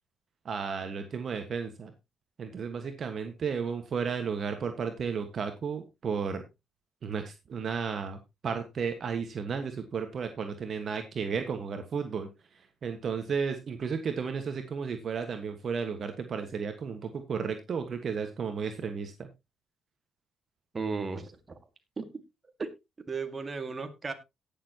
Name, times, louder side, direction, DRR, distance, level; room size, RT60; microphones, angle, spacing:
voice 1, 0.4-1.9 2.4-6.4 7.0-12.3 12.8-19.3, right 6 dB, 55° right, 7 dB, 1.4 m, -33 dB
voice 2, 20.7-21.3 22.0-22.1 22.6-22.7 23.1-24.1, right 4 dB, 30° right, 8 dB, 1.8 m, -34 dB
18.0 x 6.9 x 2.9 m, 0.23 s
cardioid pair, 90°, 0 cm